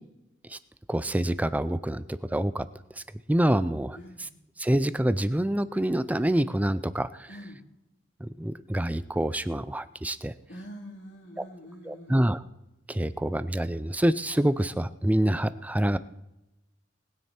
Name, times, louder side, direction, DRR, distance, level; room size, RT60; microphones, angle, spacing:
voice 1, 0.9-2.7 3.0-3.1 3.3-4.0 4.6-7.3 8.2-10.3 11.9-12.4 12.9-16.0, right 1 dB, 10° right, 15 dB, 0.5 m, -26 dB
voice 2, 4.0-4.3 7.3-7.6 10.5-12.1, equal, 70° left, 2 dB, 3.1 m, -45 dB
20.0 x 9.4 x 4.4 m, 0.94 s
head